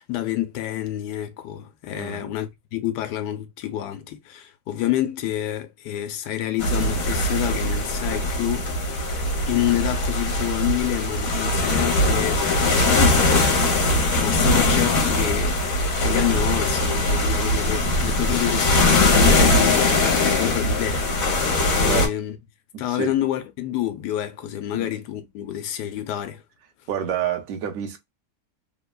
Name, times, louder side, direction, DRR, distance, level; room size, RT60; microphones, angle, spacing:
voice 1, 0.0-9.0 9.5-22.4 22.8-26.4, left 13 dB, 85° left, 1.2 m, -28 dB
voice 2, 1.9-2.3 14.4-14.6 21.8-22.1 22.7-23.1 24.7-24.9 26.9-28.0, right 9 dB, 65° right, 1.1 m, -29 dB
sound 1, 6.6-22.1, left 2 dB, 60° left, 1.3 m, -21 dB
3.2 x 2.2 x 2.2 m
omnidirectional pair, 1.7 m